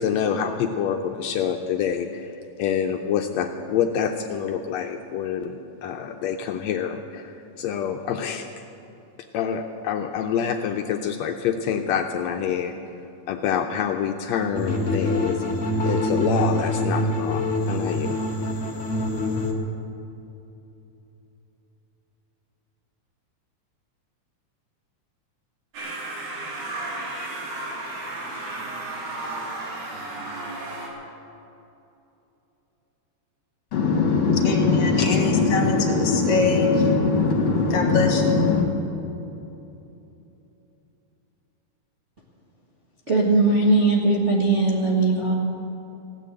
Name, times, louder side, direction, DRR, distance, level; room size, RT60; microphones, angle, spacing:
voice 1, 0.0-2.3 2.6-5.6 5.8-7.3 7.6-8.5 9.3-12.8 13.3-15.4 15.8-18.2, left 8 dB, 75° left, 4 dB, 1.8 m, -26 dB
sound 1, 14.5-19.5, left 1 dB, 35° left, 1.2 m, -25 dB
sound 2, 25.7-30.9, right 2 dB, 80° right, 3.6 m, -33 dB
voice 2, 33.7-38.7, left 4 dB, 60° left, 1 dB, 3.0 m, -20 dB
voice 3, 43.1-45.3, right 2 dB, 35° right, -4 dB, 1.2 m, -19 dB
16.0 x 10.0 x 8.1 m, 2.9 s
omnidirectional pair, 3.3 m